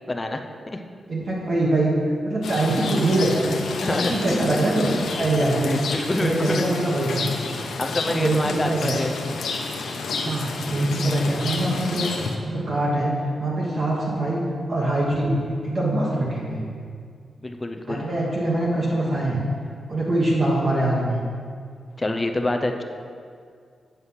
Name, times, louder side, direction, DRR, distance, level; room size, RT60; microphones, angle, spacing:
voice 1, 0.1-0.4 0.7-0.8 3.8-4.1 5.6-6.6 7.8-9.2 17.4-18.0 22.0-22.8, left 2 dB, 15° left, 4 dB, 0.5 m, -26 dB
voice 2, 1.1-1.9 2.2-3.5 3.9-5.7 6.2-7.3 8.1-9.0 10.2-12.1 12.4-14.4 14.7-15.3 15.6-16.6 17.9-19.4 19.9-21.2, right 1 dB, 40° right, -5 dB, 1.2 m, -23 dB
Rain, 2.4-12.4, left 4 dB, 80° left, 0.8 m, -30 dB
8.1 x 6.3 x 5.6 m, 2.2 s
wide cardioid pair, 165°, 0 cm